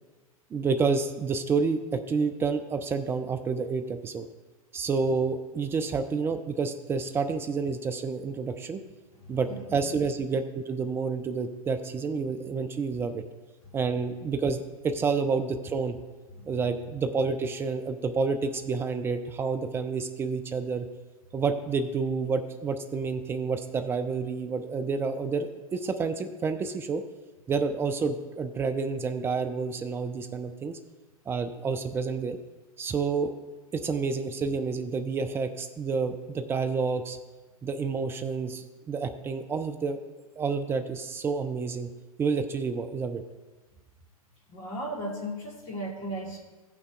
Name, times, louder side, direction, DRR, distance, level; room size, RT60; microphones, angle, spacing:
voice 1, 0.5-4.2 4.7-8.8 9.3-13.2 13.7-16.0 16.5-20.9 21.3-27.0 27.5-30.8 31.3-32.4 32.8-33.3 33.7-37.2 37.6-40.0 40.4-41.9 42.2-43.2, right 4 dB, 15° right, 7 dB, 0.4 m, -29 dB
voice 2, 44.5-46.4, equal, 35° left, -5 dB, 2.6 m, -36 dB
17.0 x 5.9 x 2.4 m, 1.2 s
figure-of-eight pair, 100°, 19 cm